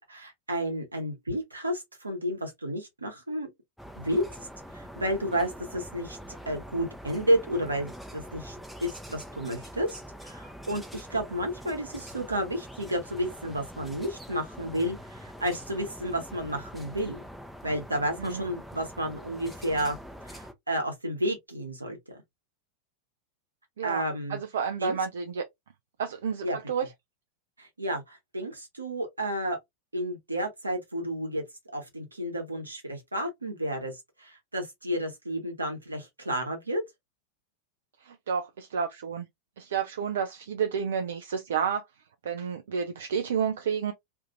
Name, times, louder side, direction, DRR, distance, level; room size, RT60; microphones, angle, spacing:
voice 1, 0.0-3.5 4.0-4.5 4.7-8.6 8.8-17.2 17.6-20.0 20.2-22.2 23.8-24.4 24.8-25.0 26.4-26.6 27.6-29.6 29.9-31.4 31.7-36.8, equal, 80° right, 0.9 m, -31 dB
sound 1, 3.8-20.5, equal, ahead, 0.5 m, -44 dB
voice 2, 24.3-25.4 26.0-26.9 38.0-39.3 39.6-41.8 42.2-43.9, right 7 dB, 60° right, 0.3 m, -30 dB
2.6 x 2.4 x 2.5 m
figure-of-eight pair, 90°, 0 cm